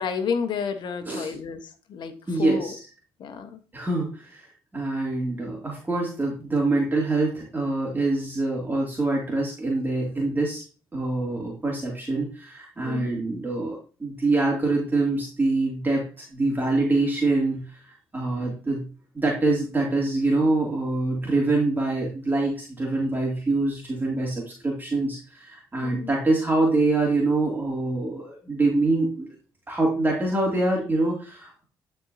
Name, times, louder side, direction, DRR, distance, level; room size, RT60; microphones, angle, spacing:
voice 1, 0.0-2.7 3.2-3.6 12.8-13.2 25.8-26.1, left 6 dB, 65° left, 8 dB, 1.3 m, -31 dB
voice 2, 2.3-2.8 3.7-4.5 4.7-10.6 10.9-18.8 19.1-29.3 29.7-31.6, right 2 dB, 25° right, -2 dB, 2.8 m, -25 dB
13.0 x 4.6 x 2.8 m, 0.37 s
supercardioid pair, 60°, 8 cm